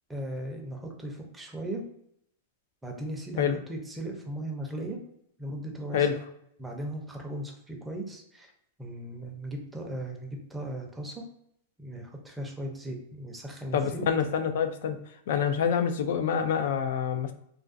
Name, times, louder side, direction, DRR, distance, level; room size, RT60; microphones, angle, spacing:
voice 1, 0.1-1.8 2.8-5.0 5.4-6.2 6.6-8.5 8.8-11.2 11.8-14.0, right 1 dB, 10° right, 1 dB, 0.5 m, -37 dB
voice 2, 13.7-15.0 15.3-17.3, left 7 dB, 70° left, 8 dB, 0.3 m, -26 dB
2.4 x 2.2 x 2.5 m, 0.73 s
supercardioid pair, 140°, 0 cm